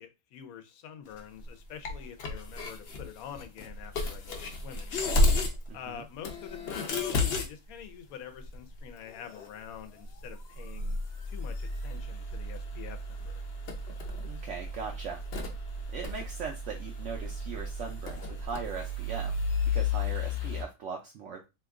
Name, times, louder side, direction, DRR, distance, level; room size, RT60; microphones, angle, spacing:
voice 1, 0.0-5.0 5.7-11.0 11.3-13.4, left 8 dB, 80° left, 1.0 m, -46 dB
sound 1, 1.2-1.5 1.8-5.7 5.9-6.0 6.2-7.5 7.8-7.9 8.4-9.5 9.7-9.8 10.0-20.6, left 2 dB, 55° left, 0.8 m, -32 dB
voice 2, 5.7-6.0 14.3-15.2 15.9-19.5 19.7-21.4, right 5 dB, 65° right, 0.8 m, -39 dB
2.9 x 2.3 x 3.5 m
omnidirectional pair, 1.5 m